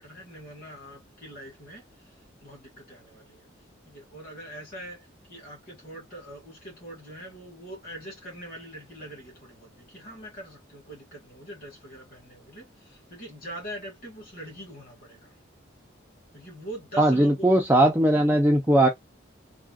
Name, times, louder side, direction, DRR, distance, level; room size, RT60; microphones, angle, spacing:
voice 1, 0.0-1.8 2.4-3.5 3.8-15.3 16.3-17.5, right 1 dB, 45° left, 1.6 m, -43 dB
voice 2, 17.0-18.9, right 1 dB, 10° right, 0.4 m, -19 dB
3.5 x 2.2 x 2.3 m
head